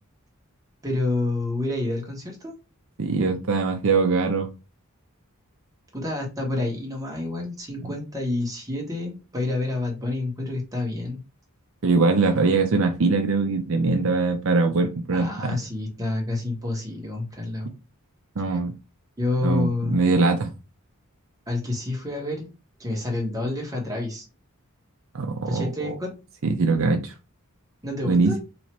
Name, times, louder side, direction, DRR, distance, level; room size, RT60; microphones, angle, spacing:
voice 1, 0.8-2.5 5.9-11.2 15.1-17.7 19.2-20.1 21.5-22.5 22.8-24.3 25.5-26.1 27.8-28.4, left 2 dB, 15° right, 0 dB, 1.3 m, -28 dB
voice 2, 3.0-4.5 11.8-15.6 18.4-18.7 19.4-20.5 25.1-25.9 26.4-27.1 28.0-28.4, right 3 dB, 65° right, 5 dB, 0.6 m, -22 dB
3.0 x 2.8 x 4.4 m, 0.29 s
head